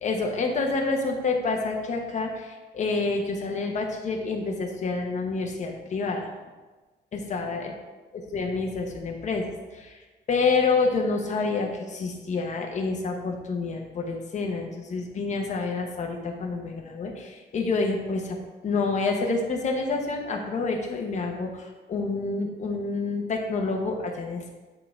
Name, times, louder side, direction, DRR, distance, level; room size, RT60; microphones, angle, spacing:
voice 1, 0.0-6.3 7.1-7.7 8.1-10.0 10.3-18.4 18.6-24.5, left 3 dB, 40° left, 1 dB, 0.9 m, -28 dB
10.0 x 3.7 x 3.5 m, 1.3 s
wide cardioid pair, 175°, 18 cm